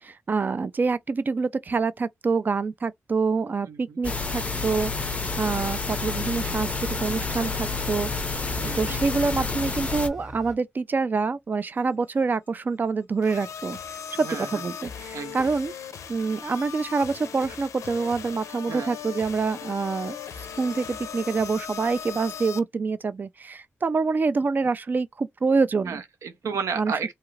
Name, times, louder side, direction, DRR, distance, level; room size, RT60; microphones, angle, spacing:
voice 1, 0.0-4.9 5.4-6.7 7.0-8.1 8.8-13.8 14.1-15.7 16.1-20.2 20.6-26.0 26.8-26.9, right 4 dB, 35° right, 0.3 m, -26 dB
voice 2, 3.7-4.0 8.6-9.0 14.2-14.5 15.1-15.5 18.7-18.9 25.9-27.1, right 6 dB, 85° right, 0.6 m, -32 dB
sound 1, 4.0-10.1, left 4 dB, 25° left, 0.5 m, -29 dB
sound 2, 6.2-10.6, equal, 5° right, 0.8 m, -41 dB
sound 3, 13.2-22.6, left 7 dB, 80° left, 0.5 m, -38 dB
2.7 x 2.4 x 3.1 m
cardioid pair, 95°, 5 cm